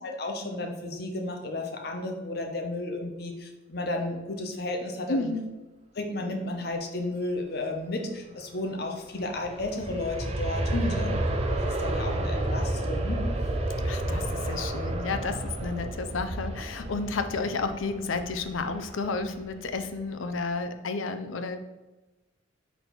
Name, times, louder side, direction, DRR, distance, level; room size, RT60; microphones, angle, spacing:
voice 1, 0.0-5.3 5.9-11.1 11.7-13.2, left 2 dB, 50° left, 3 dB, 0.9 m, -33 dB
voice 2, 5.1-5.5 10.7-11.2 13.8-21.6, left 3 dB, 85° left, 8 dB, 0.6 m, -31 dB
Aircraft, 9.1-19.9 20.4-20.5, right 1 dB, 30° right, 0.6 m, -31 dB
4.5 x 4.1 x 5.2 m, 1.1 s
head